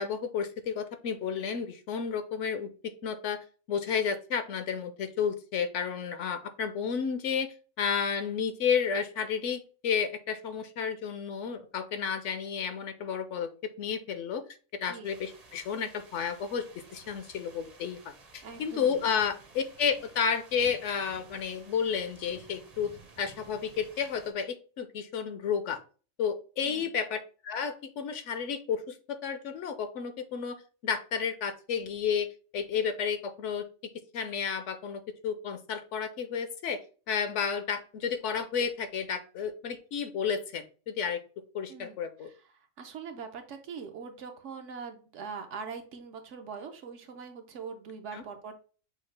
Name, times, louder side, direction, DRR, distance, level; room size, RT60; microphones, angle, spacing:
voice 1, 0.0-14.4 14.8-16.6 16.9-22.9 23.2-25.8 26.2-32.3 32.5-33.6 34.1-36.8 37.1-41.2 41.5-42.3 48.1-48.2, left 6 dB, 65° left, 9 dB, 0.9 m, -32 dB
voice 2, 14.8-15.1 18.4-19.0 26.6-26.9 41.7-42.3 42.8-48.6, right 5 dB, 65° right, 6 dB, 1.0 m, -42 dB
sound 1, 15.0-24.3, right 3 dB, 35° right, 0.7 m, -54 dB
6.4 x 2.4 x 3.2 m, 0.37 s
omnidirectional pair, 1.4 m